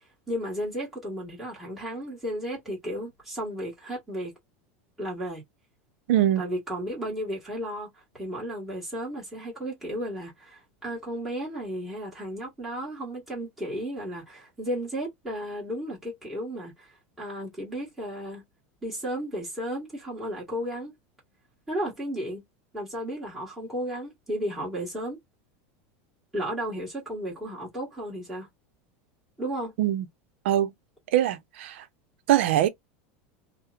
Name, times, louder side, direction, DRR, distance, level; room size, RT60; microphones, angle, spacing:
voice 1, 0.3-4.3 5.0-5.4 6.4-7.9 8.1-16.9 17.2-18.4 18.8-20.9 21.7-22.4 22.7-25.2 26.3-28.5 29.4-29.7, equal, 5° right, 1.3 m, -33 dB
voice 2, 6.1-6.4 29.8-30.0 30.4-30.7 31.1-31.9 32.3-32.7, right 12 dB, 80° right, 0.5 m, -22 dB
2.9 x 2.0 x 2.4 m
supercardioid pair, 155°, 6 cm